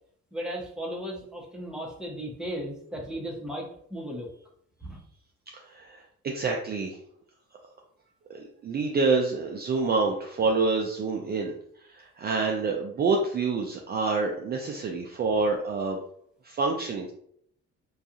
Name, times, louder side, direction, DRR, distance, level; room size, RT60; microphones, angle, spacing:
voice 1, 0.3-4.3 4.8-5.0, equal, 5° right, -1 dB, 0.7 m, -36 dB
voice 2, 5.5-7.0 8.3-11.5 11.9-16.0 16.4-17.1, right 4 dB, 35° right, 0 dB, 0.4 m, -27 dB
2.3 x 2.3 x 2.7 m, 0.66 s
cardioid pair, 90°, 30 cm